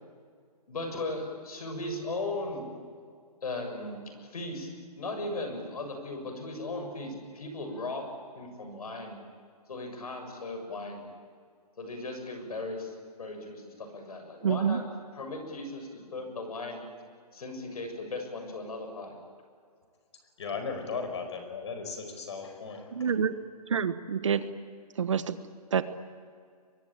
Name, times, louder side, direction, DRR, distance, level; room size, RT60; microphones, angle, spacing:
voice 1, 0.7-2.7 3.4-4.7 5.0-8.1 8.4-9.2 9.7-11.1 11.8-14.8 15.1-16.8 17.3-19.2, left 2 dB, 65° left, 5 dB, 7.1 m, -37 dB
voice 2, 14.4-14.8 22.9-23.3 23.7-24.4 25.0-25.4 25.7-25.8, right 7 dB, 50° right, 12 dB, 1.2 m, -27 dB
voice 3, 20.4-23.2, left 5 dB, 45° left, 6 dB, 5.0 m, -37 dB
24.5 x 22.5 x 8.8 m, 2.1 s
hypercardioid pair, 180°, 20 cm